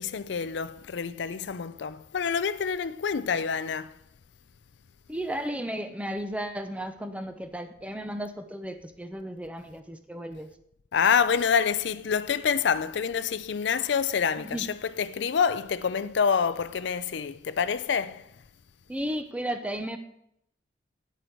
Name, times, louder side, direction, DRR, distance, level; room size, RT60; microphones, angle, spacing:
voice 1, 0.0-4.0 10.9-18.3, left 6 dB, 80° left, 0.4 m, -27 dB
voice 2, 5.1-10.5 14.4-14.7 18.9-20.0, right 1 dB, 5° right, 0.6 m, -34 dB
9.4 x 8.3 x 4.5 m
head